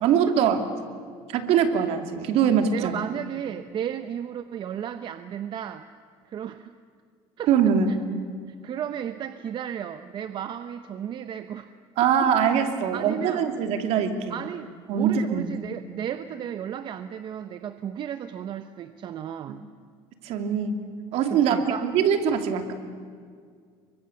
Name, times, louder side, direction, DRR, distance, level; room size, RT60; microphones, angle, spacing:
voice 1, 0.0-0.6 1.3-3.0 7.5-8.0 12.0-14.4 14.9-15.5 20.2-20.8 21.1-22.7, right 7 dB, 65° right, 6 dB, 2.7 m, -22 dB
voice 2, 2.7-5.9 6.3-6.7 7.4-7.5 7.9-8.0 8.5-11.7 12.9-13.4 14.3-19.7 21.3-21.9, right 9 dB, 45° right, 10 dB, 0.9 m, -34 dB
29.0 x 24.0 x 7.1 m, 2.1 s
cardioid pair, 135°, 11 cm